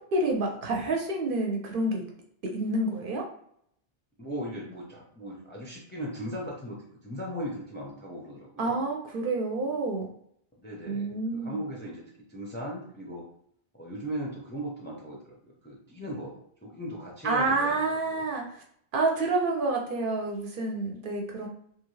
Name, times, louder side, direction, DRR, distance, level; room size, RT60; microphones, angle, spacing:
voice 1, 0.1-2.0 2.4-3.2 8.6-10.1 10.9-11.6 17.2-18.6 18.9-21.5, right 2 dB, 60° right, 1 dB, 0.6 m, -28 dB
voice 2, 4.2-8.8 10.6-12.0 12.3-13.2 13.7-17.8 18.1-18.2, equal, 15° left, -2 dB, 0.4 m, -38 dB
2.6 x 2.4 x 3.0 m, 0.68 s
omnidirectional pair, 1.1 m